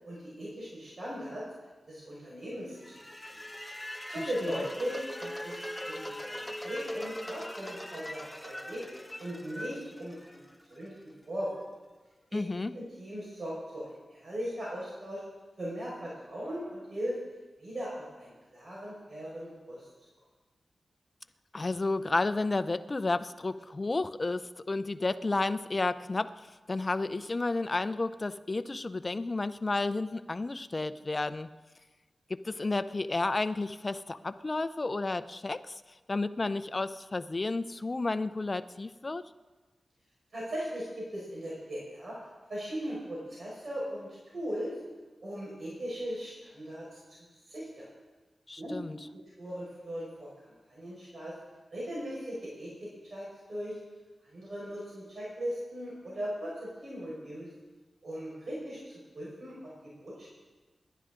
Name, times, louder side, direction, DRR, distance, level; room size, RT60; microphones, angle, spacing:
voice 1, 0.0-1.4 1.9-2.8 3.3-3.4 4.1-8.8 9.2-10.4 10.7-11.0 11.3-11.7 12.3-12.4 12.7-15.2 15.6-17.2 17.6-19.9 40.3-42.2 42.5-44.7 45.2-46.9 47.5-47.9 48.6-48.8 49.1-51.3 51.7-53.8 54.2-57.5 58.0-59.6 60.0-60.3, equal, 55° right, -6 dB, 5.2 m, -38 dB
sound 1, 2.8-10.9, equal, 10° left, 1.0 m, -41 dB
voice 2, 12.3-12.7 21.5-31.5 32.3-35.8 36.1-39.2 48.5-49.0, left 3 dB, 35° left, 12 dB, 0.6 m, -32 dB
26.0 x 11.5 x 3.8 m, 1.3 s
wide cardioid pair, 90°, 0 cm